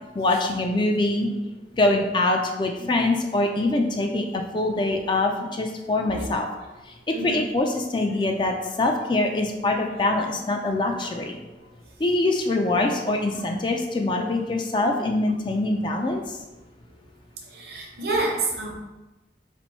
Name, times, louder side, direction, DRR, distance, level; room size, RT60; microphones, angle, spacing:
voice 1, 0.2-1.3 1.8-6.5 7.1-11.4 12.0-16.4, left 2 dB, 25° left, 3 dB, 0.4 m, -24 dB
voice 2, 6.0-6.4 7.1-7.5 11.0-11.1 11.6-11.7 17.5-18.7, right 2 dB, 60° right, -1 dB, 0.9 m, -29 dB
4.4 x 2.6 x 4.1 m, 1.1 s
head